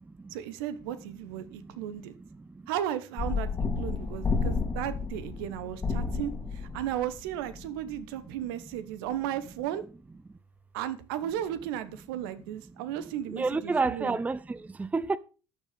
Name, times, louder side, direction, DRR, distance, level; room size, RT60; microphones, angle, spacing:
voice 1, 0.3-2.1 2.7-3.5 3.8-9.8 10.7-14.2, right 11 dB, 65° right, 1.1 m, -35 dB
sound 1, 3.2-8.0, left 4 dB, 25° left, 2.0 m, -31 dB
voice 2, 13.3-15.2, right 3 dB, 10° right, 0.5 m, -29 dB
12.0 x 6.6 x 5.1 m
figure-of-eight pair, 65°, 13 cm